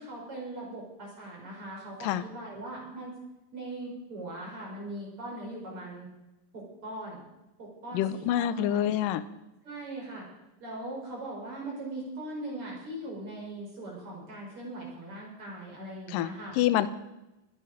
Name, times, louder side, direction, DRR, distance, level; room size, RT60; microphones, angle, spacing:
voice 1, 0.0-3.1 3.5-6.1 6.5-7.2 7.6-9.0 9.6-10.3 10.6-16.6, right 1 dB, 40° right, -3 dB, 5.5 m, -40 dB
voice 2, 7.9-9.2 16.1-16.9, left 12 dB, 80° left, 14 dB, 2.2 m, -27 dB
22.0 x 9.2 x 5.0 m, 0.96 s
omnidirectional pair, 4.1 m